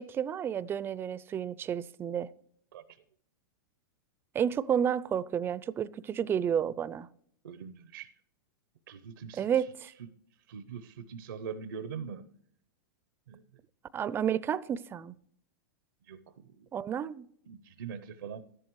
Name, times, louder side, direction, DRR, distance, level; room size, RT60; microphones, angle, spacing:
voice 1, 0.0-2.3 4.3-7.1 9.4-9.9 13.9-15.1 16.7-17.3, right 8 dB, 20° right, 0.4 m, -31 dB
voice 2, 2.7-3.0 7.4-8.1 8.9-10.1 10.5-12.3 13.3-13.4 16.1-16.7 17.5-18.4, right 7 dB, 85° right, 0.7 m, -43 dB
12.5 x 11.0 x 3.0 m
hypercardioid pair, 125°, 11 cm